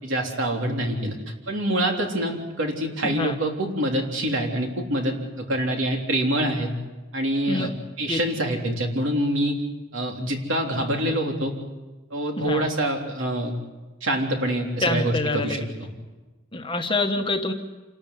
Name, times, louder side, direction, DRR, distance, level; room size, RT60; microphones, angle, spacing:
voice 1, 0.0-1.2 1.5-6.7 7.1-7.7 8.0-9.6 9.9-11.5 12.1-13.5 14.0-15.6, right 1 dB, 65° right, 1 dB, 3.6 m, -25 dB
voice 2, 3.0-3.4 7.5-7.7 8.1-8.2 12.4-12.7 14.8-15.6 16.5-17.5, left 2 dB, 25° left, 5 dB, 1.3 m, -26 dB
27.5 x 13.5 x 9.6 m, 1.2 s
head